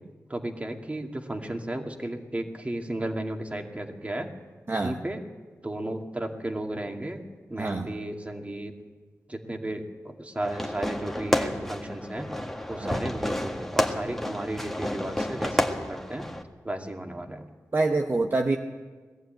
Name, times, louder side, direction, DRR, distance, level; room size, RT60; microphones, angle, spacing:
voice 1, 0.3-4.3 4.7-5.2 5.6-7.2 7.5-8.7 9.3-12.3 12.7-16.3 16.6-17.5, right 1 dB, 25° right, 3 dB, 2.3 m, -34 dB
voice 2, 4.7-5.0 7.6-7.9 12.8-13.0 17.7-18.6, right 3 dB, 40° right, 4 dB, 1.1 m, -26 dB
Fireworks, 10.4-16.4, left 1 dB, 5° left, 1.8 m, -30 dB
20.0 x 14.5 x 9.1 m, 1.4 s
wide cardioid pair, 85°, 6 cm